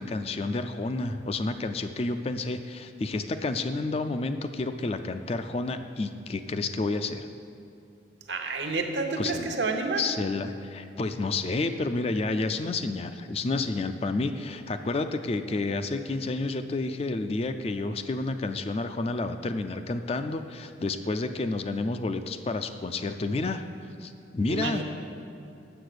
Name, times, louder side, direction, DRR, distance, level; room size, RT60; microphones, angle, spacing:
voice 1, 0.0-7.3 9.2-9.6 10.0-23.6 24.0-24.8, left 3 dB, 35° left, 9 dB, 0.4 m, -30 dB
voice 2, 8.3-10.0 24.5-24.8, right 3 dB, 75° right, 4 dB, 0.9 m, -29 dB
8.0 x 6.8 x 6.6 m, 2.7 s
head